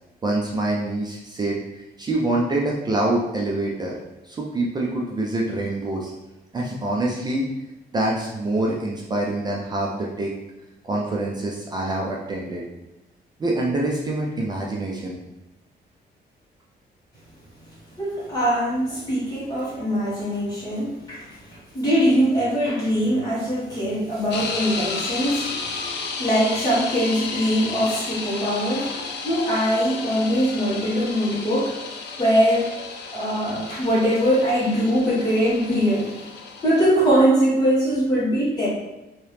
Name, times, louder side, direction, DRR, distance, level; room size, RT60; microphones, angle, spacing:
voice 1, 0.2-4.0 4.2-6.1 6.5-7.4 7.9-10.3 10.8-12.6 13.4-15.2, right 2 dB, 25° right, -2 dB, 0.4 m, -25 dB
voice 2, 18.0-25.5 26.2-28.9 29.2-31.7 32.2-32.7 33.1-36.1 36.6-38.7, equal, 25° left, -9 dB, 1.4 m, -22 dB
sound 1, 24.3-36.8, left 4 dB, 85° left, 0.5 m, -33 dB
3.0 x 2.8 x 3.3 m, 1.0 s
wide cardioid pair, 175°, 17 cm